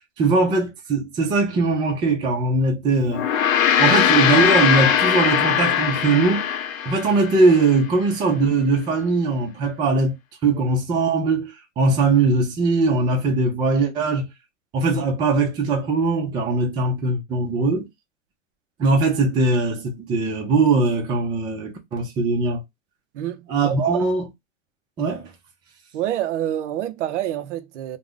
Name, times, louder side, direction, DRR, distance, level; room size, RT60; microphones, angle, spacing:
voice 1, 0.2-3.3 3.8-6.5 6.9-10.2 10.4-14.3 14.7-17.9 18.8-22.6 23.5-24.2 25.0-25.3, right 3 dB, 10° right, 0.3 m, -20 dB
Gong, 3.1-7.7, left 9 dB, 90° left, 0.6 m, -20 dB
voice 2, 23.1-23.8 25.9-28.0, right 12 dB, 65° right, 0.6 m, -27 dB
2.4 x 2.0 x 3.4 m
hypercardioid pair, 120°, 39 cm